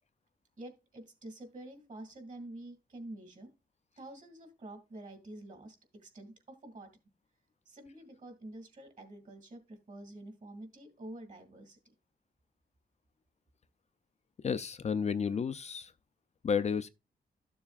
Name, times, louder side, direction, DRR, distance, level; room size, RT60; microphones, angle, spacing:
voice 1, 0.6-3.5 4.0-6.9 7.7-11.8, right 1 dB, 45° right, 2.3 m, -48 dB
voice 2, 14.4-15.9 16.4-16.9, left 6 dB, 40° left, 0.4 m, -31 dB
13.0 x 7.0 x 2.4 m
wide cardioid pair, 150°, 17 cm